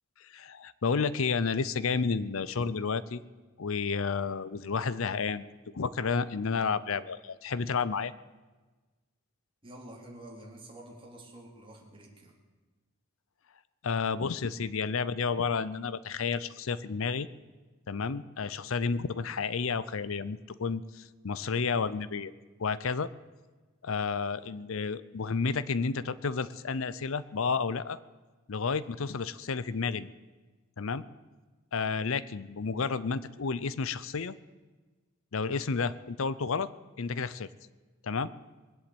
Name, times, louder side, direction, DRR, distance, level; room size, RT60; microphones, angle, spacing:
voice 1, 0.2-3.2 3.6-5.4 5.7-8.1 13.8-17.3 17.9-22.3 22.6-23.1 23.8-28.0 28.5-30.1 30.8-31.1 31.7-34.3 35.3-36.7 37.0-37.5 38.0-38.3, left 5 dB, 70° left, 16 dB, 0.6 m, -31 dB
voice 2, 9.6-12.3, right 1 dB, 25° right, -1 dB, 3.1 m, -48 dB
21.0 x 8.1 x 8.6 m, 1.3 s
head